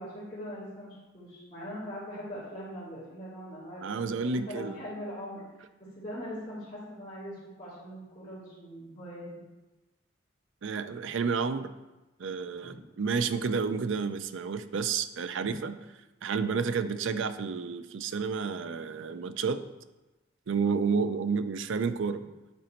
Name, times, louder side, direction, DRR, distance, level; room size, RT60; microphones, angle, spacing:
voice 1, 0.0-5.4 5.8-9.2 12.6-12.7 15.4-15.6, equal, 30° left, -14 dB, 2.5 m, -41 dB
voice 2, 3.8-4.8 10.6-11.7 12.2-15.8 16.2-19.6 20.5-22.2, right 5 dB, 75° right, 11 dB, 0.4 m, -30 dB
9.2 x 4.1 x 4.4 m, 1.1 s
head